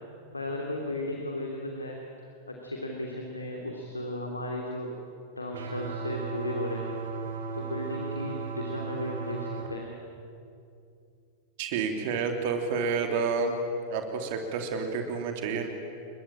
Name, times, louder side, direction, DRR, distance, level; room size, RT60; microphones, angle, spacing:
voice 1, 0.3-2.0 2.5-4.9 5.4-6.9 7.5-9.9, left 1 dB, 80° left, 1 dB, 3.0 m, -35 dB
sound 1, 5.5-9.7, right 4 dB, 65° right, 3.2 m, -35 dB
voice 2, 11.6-13.6 13.9-15.7, right 5 dB, 50° right, 5 dB, 3.1 m, -29 dB
29.5 x 22.5 x 9.0 m, 2.6 s
figure-of-eight pair, 90°, 0 cm